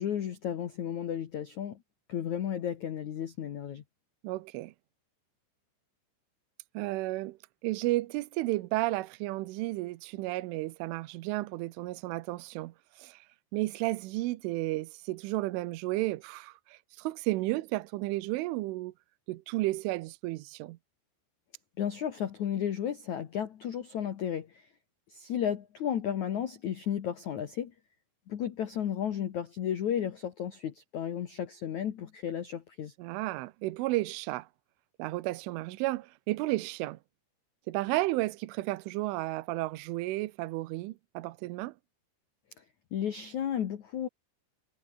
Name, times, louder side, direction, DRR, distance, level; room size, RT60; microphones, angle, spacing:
voice 1, 0.0-1.8 2.1-3.8 21.8-24.7 25.1-27.7 28.3-32.9 42.9-44.1, left 9 dB, 70° left, 1.8 m, -33 dB
voice 2, 4.2-4.7 6.7-13.3 13.5-18.9 19.3-20.8 33.0-34.5 35.0-37.0 37.7-41.7, right 19 dB, 80° right, 3.3 m, -33 dB
omnidirectional pair, 5.8 m